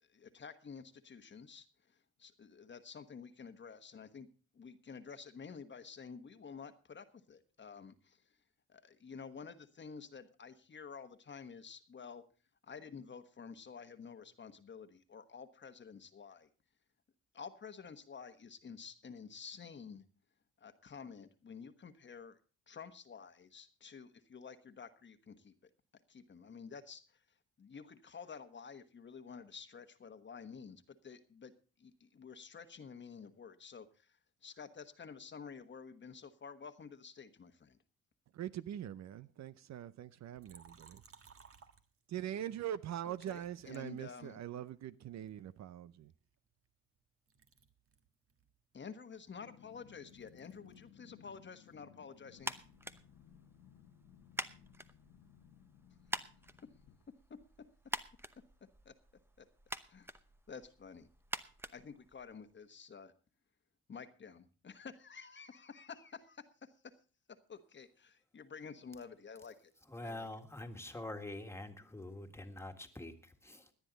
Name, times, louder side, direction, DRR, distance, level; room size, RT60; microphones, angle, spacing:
voice 1, 0.0-4.3 4.5-8.3 8.7-12.2 12.6-16.5 17.3-20.0 20.6-22.4 22.7-25.5 26.1-27.2 27.6-31.5 31.8-37.8 43.0-44.4 48.7-52.5 58.8-58.9 59.4-59.5 59.9-60.1 60.5-61.1 61.7-63.1 63.9-66.7 67.5-69.7 70.0-70.3, left 6 dB, 40° left, 1.2 m, -51 dB
voice 2, 38.3-41.0 42.1-46.1, right 11 dB, 65° right, 0.7 m, -43 dB
Liquid, 40.4-42.3 43.1-44.7 45.3-47.0 47.3-51.0 51.3-52.9, right 6 dB, 50° right, 1.6 m, -64 dB
Growling, 49.3-57.0, left 9 dB, 90° left, 1.3 m, -61 dB
sound 1, 52.4-62.6, right 1 dB, 10° right, 0.8 m, -47 dB
voice 3, 69.9-73.7, left 2 dB, 10° left, 1.8 m, -45 dB
18.0 x 10.5 x 3.9 m
cardioid pair, 90°, 30 cm